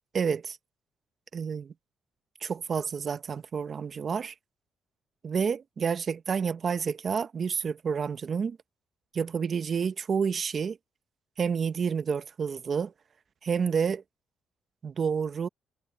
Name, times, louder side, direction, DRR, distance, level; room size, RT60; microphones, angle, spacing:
voice 1, 0.1-0.6 1.3-1.7 2.4-4.3 5.2-8.6 9.1-10.8 11.4-12.9 13.4-14.0 14.8-15.5, right 6 dB, 50° right, 0.9 m, -29 dB
cardioid pair, 90°, 0 cm